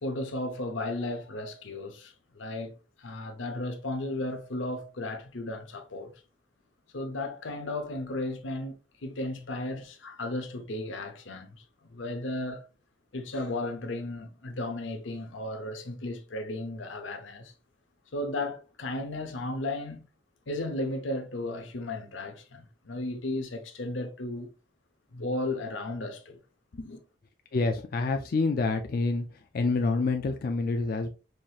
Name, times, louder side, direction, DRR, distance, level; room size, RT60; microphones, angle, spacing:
voice 1, 0.0-2.7 3.0-6.1 6.9-8.8 9.0-12.6 13.1-17.5 18.1-20.1 20.5-24.5 25.1-26.4 26.7-27.0, left 2 dB, 85° left, 0.8 m, -34 dB
voice 2, 27.5-29.3 29.5-31.1, left 3 dB, 50° left, 0.4 m, -27 dB
4.8 x 2.8 x 2.4 m
head